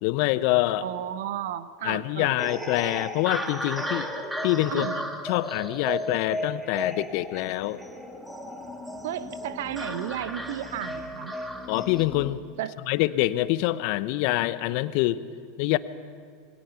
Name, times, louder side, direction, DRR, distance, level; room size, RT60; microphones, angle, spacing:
voice 1, 0.0-0.8 1.8-4.1 4.4-4.9 5.2-7.8 11.7-12.4 12.9-15.2 15.6-15.8, left 17 dB, 55° left, 15 dB, 0.9 m, -25 dB
voice 2, 0.8-2.4 4.7-5.0 9.0-11.3 12.6-12.8, right 11 dB, 65° right, 13 dB, 1.1 m, -33 dB
sound 1, 2.4-12.0, equal, 10° right, 2.8 m, -35 dB
sound 2, 7.1-12.3, left 4 dB, 20° left, 1.9 m, -45 dB
27.5 x 22.5 x 5.9 m, 2.1 s
hypercardioid pair, 85°, 0 cm